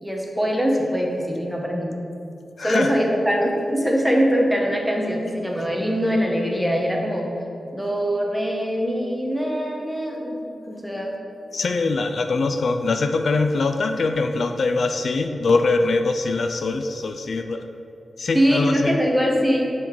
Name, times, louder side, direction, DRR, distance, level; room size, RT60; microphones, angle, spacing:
voice 1, 0.0-1.9 2.6-7.3 7.7-10.4 10.7-11.2 18.3-19.7, equal, ahead, -1 dB, 1.1 m, -22 dB
voice 2, 2.6-2.9 11.5-17.6 18.2-19.0, left 3 dB, 65° left, 6 dB, 0.3 m, -22 dB
5.7 x 5.3 x 4.6 m, 2.8 s
cardioid pair, 80°, 0 cm